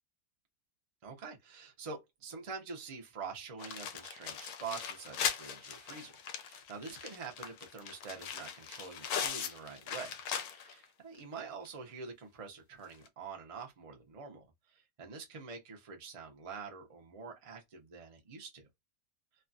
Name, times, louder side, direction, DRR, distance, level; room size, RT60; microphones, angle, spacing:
voice 1, 1.0-10.1 10.5-18.7, right 5 dB, 65° right, 0.3 m, -46 dB
sound 1, 3.6-10.8 11.2-11.3 11.6-11.7 12.9-13.1, left 8 dB, 70° left, 1.0 m, -39 dB
3.2 x 2.1 x 2.5 m
omnidirectional pair, 1.8 m